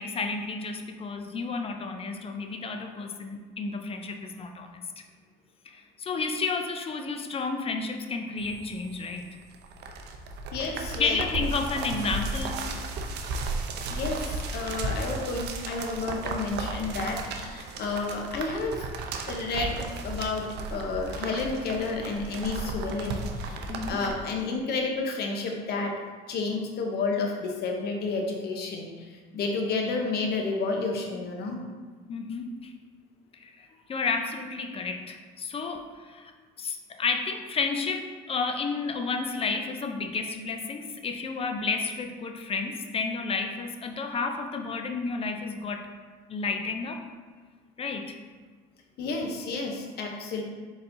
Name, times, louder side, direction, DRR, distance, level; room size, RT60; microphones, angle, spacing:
voice 1, 0.0-4.9 5.7-9.3 11.0-12.6 23.7-24.0 32.1-32.7 33.4-36.3 36.6-45.9 46.3-47.0 47.8-48.2, left 4 dB, 30° left, 5 dB, 0.4 m, -31 dB
sound 1, 8.4-24.1, right 3 dB, 60° right, 0.5 m, -35 dB
voice 2, 10.5-11.2 13.9-18.9 19.2-23.6 23.9-26.0 26.3-31.6 49.0-50.4, left 3 dB, 55° left, 2 dB, 0.8 m, -31 dB
4.2 x 4.0 x 2.6 m, 1.5 s
supercardioid pair, 85°, 20 cm